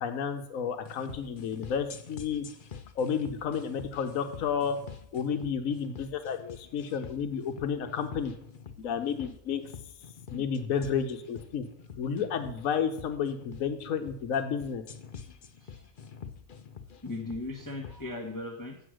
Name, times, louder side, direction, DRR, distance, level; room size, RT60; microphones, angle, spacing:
voice 1, 0.0-2.5 3.0-4.8 5.1-8.3 8.8-9.6 10.3-11.6 12.0-14.8, left 7 dB, 75° left, 7 dB, 1.2 m, -31 dB
sound 1, 0.8-18.0, left 6 dB, 45° left, 0.8 m, -46 dB
voice 2, 17.0-18.8, left 2 dB, 15° left, 0 dB, 1.1 m, -38 dB
7.9 x 7.6 x 6.3 m, 0.71 s
omnidirectional pair, 1.4 m